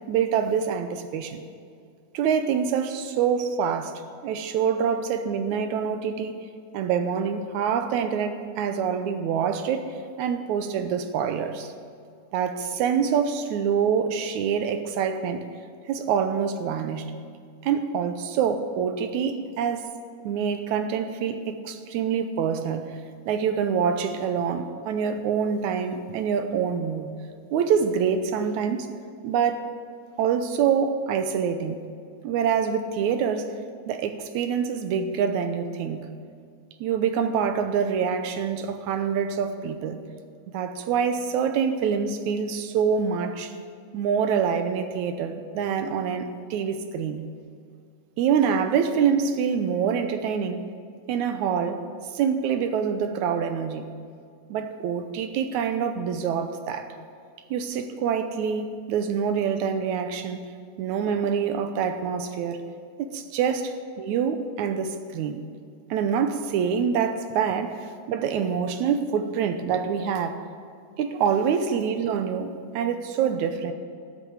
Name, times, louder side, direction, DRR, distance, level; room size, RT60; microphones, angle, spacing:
voice 1, 0.1-1.4 2.1-6.4 6.7-11.7 12.3-15.5 15.9-17.1 17.6-19.9 20.2-22.9 23.3-27.1 27.5-28.9 29.2-29.7 30.2-31.8 32.2-33.6 33.9-36.1 36.8-40.0 40.5-43.5 43.9-47.3 48.2-50.7 51.1-51.8 52.1-53.9 54.5-56.9 57.5-60.5 60.8-62.6 63.0-65.5 65.9-70.4 71.0-73.7, right 7 dB, 75° right, 2.0 m, -26 dB
13.0 x 9.0 x 8.7 m
omnidirectional pair, 3.8 m